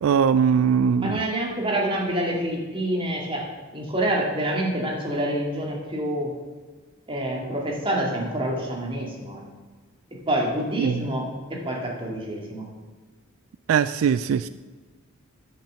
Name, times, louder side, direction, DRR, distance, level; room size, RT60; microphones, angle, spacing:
voice 1, 0.0-1.2 10.8-11.0 13.7-14.5, right 7 dB, 80° right, 13 dB, 0.3 m, -21 dB
voice 2, 1.0-6.3 7.1-9.4 10.3-12.7, right 1 dB, 25° right, -2 dB, 2.3 m, -27 dB
10.0 x 6.0 x 7.5 m, 1.4 s
head